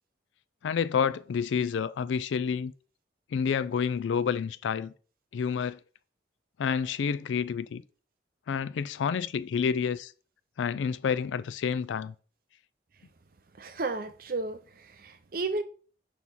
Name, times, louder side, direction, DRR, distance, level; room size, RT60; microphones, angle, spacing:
voice 1, 0.6-2.7 3.3-4.9 5.3-5.8 6.6-7.8 8.5-10.1 10.6-12.1, left 6 dB, 80° left, 0.3 m, -29 dB
voice 2, 13.6-15.6, right 3 dB, 50° right, 0.6 m, -33 dB
6.2 x 3.0 x 5.4 m
head